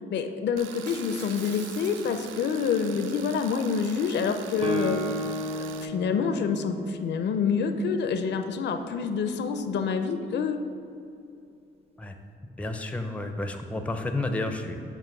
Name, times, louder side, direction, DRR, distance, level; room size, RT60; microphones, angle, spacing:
voice 1, 0.1-5.0 5.8-10.6, left 6 dB, 60° left, 7 dB, 0.5 m, -27 dB
Tools, 0.6-5.9, right 9 dB, 80° right, 0.4 m, -44 dB
Shatter, 0.9-2.7 3.1-3.4, right 4 dB, 60° right, 0.8 m, -45 dB
Guitar, 4.6-8.3, right 1 dB, 30° right, 0.7 m, -34 dB
voice 2, 12.4-14.8, left 2 dB, 5° left, 6 dB, 0.5 m, -31 dB
7.6 x 2.5 x 5.8 m, 2.6 s
cardioid pair, 90°, 20 cm